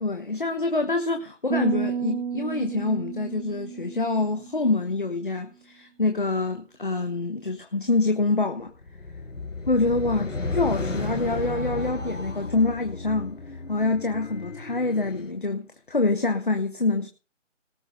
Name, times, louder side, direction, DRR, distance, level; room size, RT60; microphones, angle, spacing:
voice 1, 0.0-8.7 9.7-13.4 13.7-17.1, left 3 dB, 40° left, 1.4 m, -26 dB
sound 1, 1.5-4.9, right 7 dB, 60° right, 2.4 m, -32 dB
sound 2, 8.8-15.3, left 2 dB, 75° left, 4.2 m, -33 dB
19.0 x 6.3 x 6.8 m
figure-of-eight pair, 180°, 38 cm